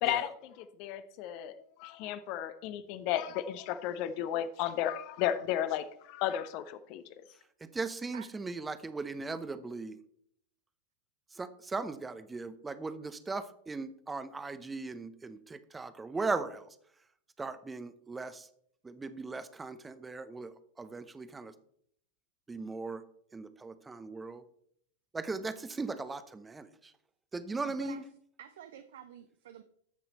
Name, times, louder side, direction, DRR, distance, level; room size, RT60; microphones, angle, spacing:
voice 1, 0.0-7.0, left 11 dB, 45° left, 13 dB, 0.9 m, -34 dB
voice 2, 7.7-10.0 11.4-16.7 17.4-18.5 18.8-21.5 22.5-23.0 23.3-24.4 25.1-26.7 27.3-28.0, right 3 dB, 10° right, 13 dB, 0.8 m, -38 dB
voice 3, 27.6-28.1 28.4-29.6, right 10 dB, 60° right, 10 dB, 0.6 m, -49 dB
13.5 x 5.9 x 4.2 m, 0.67 s
figure-of-eight pair, 90°, 0 cm